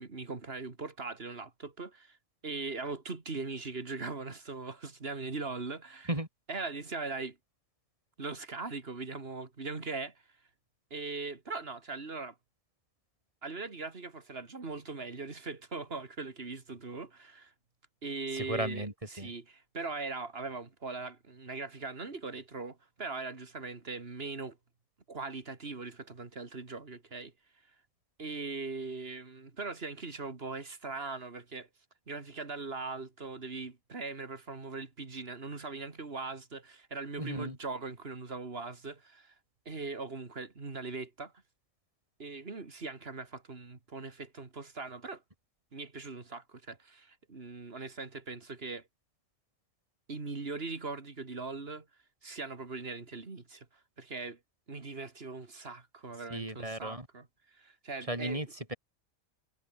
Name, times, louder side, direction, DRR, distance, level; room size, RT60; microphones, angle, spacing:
voice 1, 0.0-2.2 2.4-6.1 6.5-7.4 8.2-10.2 10.9-12.4 13.4-17.5 18.0-24.6 25.1-27.3 28.2-31.7 32.1-39.4 39.7-41.3 42.2-45.2 45.7-48.9 50.1-51.9 52.2-54.4 54.7-58.4, right 3 dB, 45° right, 2.7 m, -40 dB
voice 2, 18.3-19.3 37.2-37.5 56.3-57.0 58.1-58.8, right 1 dB, 25° right, 5.0 m, -35 dB
omnidirectional pair, 1.5 m